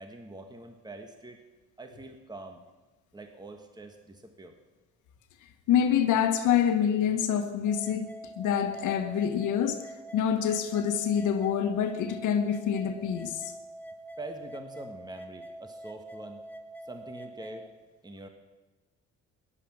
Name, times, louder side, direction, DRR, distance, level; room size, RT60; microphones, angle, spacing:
voice 1, 0.0-1.4 1.8-2.6 3.1-4.6 14.2-16.4 16.8-17.7 18.0-18.3, right 2 dB, 15° right, 1.5 m, -44 dB
voice 2, 5.7-9.9 10.1-13.5, left 8 dB, 85° left, 1.3 m, -26 dB
sound 1, 7.7-17.7, right 1 dB, 5° left, 1.2 m, -45 dB
15.5 x 11.0 x 6.2 m
cardioid pair, 90°, 30 cm